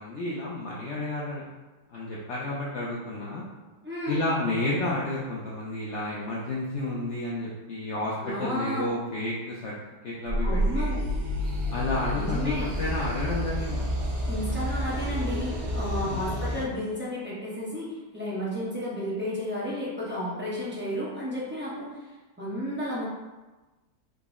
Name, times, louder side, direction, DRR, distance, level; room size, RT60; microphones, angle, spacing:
voice 1, 0.0-1.4 1.9-3.4 4.1-9.7 10.0-10.9 11.7-13.9 16.1-16.3, left 2 dB, 75° left, -5 dB, 0.6 m, -31 dB
voice 2, 3.8-4.2 8.2-8.9 10.4-11.0 12.1-12.7 14.3-22.0 22.4-23.0, equal, 10° right, -9 dB, 0.5 m, -32 dB
sound 1, 10.3-16.6, equal, 55° right, 0.9 m, -29 dB
3.8 x 2.0 x 3.5 m, 1.2 s
omnidirectional pair, 1.8 m